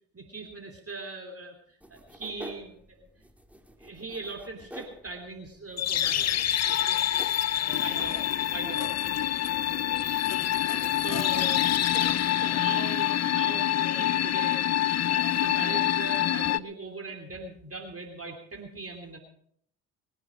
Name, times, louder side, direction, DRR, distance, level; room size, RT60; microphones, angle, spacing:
voice 1, 0.1-3.0 3.8-7.0 7.5-8.2 8.5-8.9 10.7-11.6 11.9-14.6 15.0-19.2, right 3 dB, 30° right, 4 dB, 3.2 m, -40 dB
sound 1, 1.8-10.2, equal, 5° right, 2.3 m, -49 dB
sound 2, 5.8-16.6, left 11 dB, 35° left, 0.5 m, -26 dB
voice 2, 7.6-8.1 9.1-10.7 15.5-15.8, right 1 dB, 20° left, 2 dB, 6.7 m, -51 dB
21.5 x 10.0 x 5.1 m, 0.66 s
hypercardioid pair, 45°, 45 cm